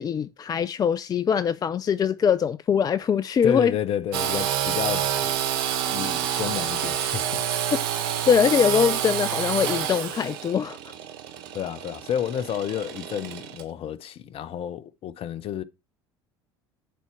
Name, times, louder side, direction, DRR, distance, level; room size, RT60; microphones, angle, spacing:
voice 1, 0.0-3.7 7.7-10.9, left 7 dB, 30° left, 0.4 m, -23 dB
voice 2, 3.4-7.4 11.5-15.6, left 9 dB, 45° left, 0.8 m, -31 dB
Engine / Sawing, 4.1-13.6, right 10 dB, 65° right, 1.3 m, -28 dB
10.5 x 4.3 x 5.8 m
figure-of-eight pair, 65°, 13 cm